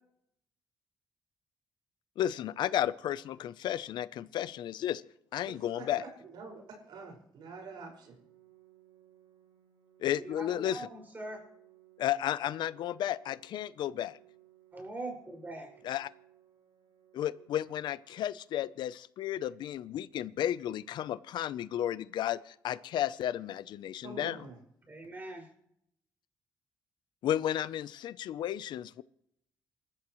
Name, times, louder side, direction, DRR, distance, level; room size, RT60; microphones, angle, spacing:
voice 1, 2.2-5.0 5.3-6.0 10.0-10.8 12.0-14.2 15.8-16.1 17.1-24.4 27.2-29.0, left 11 dB, 80° left, 16 dB, 0.7 m, -33 dB
voice 2, 5.5-8.2 24.0-24.6, right 4 dB, 80° right, 1 dB, 5.5 m, -47 dB
Organ, 7.5-18.5, right 14 dB, 60° right, 6.4 m, -62 dB
voice 3, 10.2-11.4 14.7-15.7 24.9-25.5, right 2 dB, 25° right, 1 dB, 5.8 m, -42 dB
27.5 x 13.5 x 3.2 m, 0.74 s
cardioid pair, 115°, 8 cm